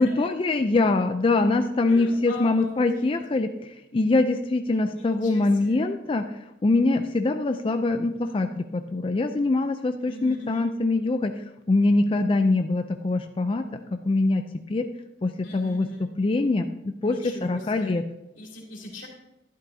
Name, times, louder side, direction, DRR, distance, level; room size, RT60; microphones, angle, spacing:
voice 1, 0.0-13.6 13.9-14.9 15.2-15.9 16.2-18.0, left 2 dB, 30° left, 7 dB, 0.4 m, -24 dB
voice 2, 1.9-3.2 5.0-5.8 10.1-10.7 15.4-16.0 17.0-18.0 18.3-19.1, left 2 dB, 90° left, -3 dB, 2.9 m, -41 dB
12.0 x 11.0 x 2.7 m, 0.93 s
head